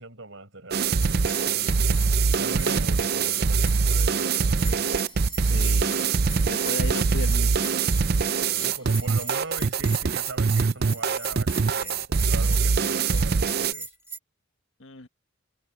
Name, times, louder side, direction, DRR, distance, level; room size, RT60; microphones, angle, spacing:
voice 1, 0.0-1.8 2.4-5.0 8.5-13.9, right 3 dB, 65° right, 5.5 m, -41 dB
sound 1, 0.7-13.7, right 5 dB, 45° right, 0.5 m, -23 dB
Bell, 1.0-14.2, right 3 dB, 10° right, 1.9 m, -40 dB
sound 2, 3.7-9.7, left 3 dB, 25° left, 5.8 m, -55 dB
voice 2, 5.4-6.0 6.5-7.7 14.8-15.1, left 3 dB, 65° left, 1.6 m, -36 dB
head